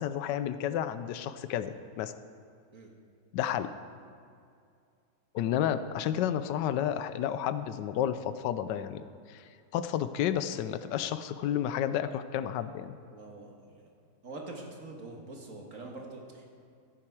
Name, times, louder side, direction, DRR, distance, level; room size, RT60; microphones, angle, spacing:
voice 1, 0.0-2.1 3.3-3.7 5.3-9.4 9.7-13.0, left 10 dB, 85° left, 12 dB, 1.2 m, -31 dB
voice 2, 13.1-13.9 14.2-16.5, right 2 dB, 50° right, 1 dB, 1.8 m, -45 dB
15.0 x 8.8 x 4.8 m, 2.3 s
omnidirectional pair, 1.9 m